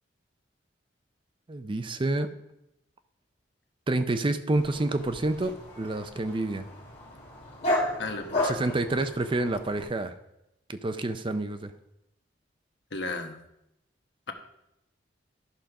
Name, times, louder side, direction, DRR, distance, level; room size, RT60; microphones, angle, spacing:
voice 1, 1.5-2.3 3.9-6.7 8.4-10.1 10.7-11.7, right 2 dB, 30° right, 9 dB, 0.5 m, -28 dB
Dog, 4.5-9.9, left 1 dB, 40° left, 3.0 m, -33 dB
voice 2, 8.0-8.5 12.9-13.4, left 3 dB, 70° left, 5 dB, 1.1 m, -34 dB
11.5 x 5.0 x 5.9 m, 0.85 s
head